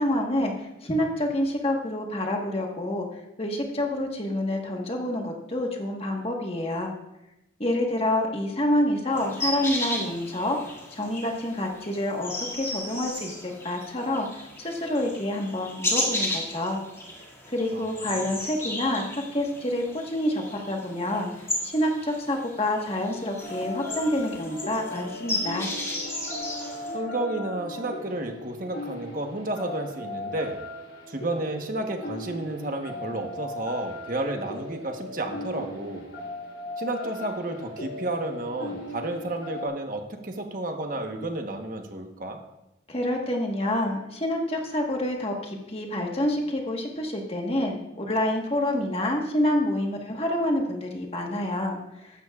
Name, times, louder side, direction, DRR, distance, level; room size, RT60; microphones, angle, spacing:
voice 1, 0.0-3.1 3.4-6.9 7.6-10.6 10.9-12.3 12.6-16.8 17.5-21.3 21.6-25.7 42.9-52.1, left 1 dB, 30° left, 1 dB, 1.4 m, -27 dB
sound 1, 9.1-27.0, left 1 dB, 15° left, 1.9 m, -34 dB
sound 2, 23.4-39.7, left 1 dB, 85° left, 3.5 m, -38 dB
voice 2, 26.9-30.6 31.1-36.1 36.8-42.4, right 2 dB, 45° right, 4 dB, 1.2 m, -31 dB
15.0 x 11.5 x 2.4 m, 0.92 s
head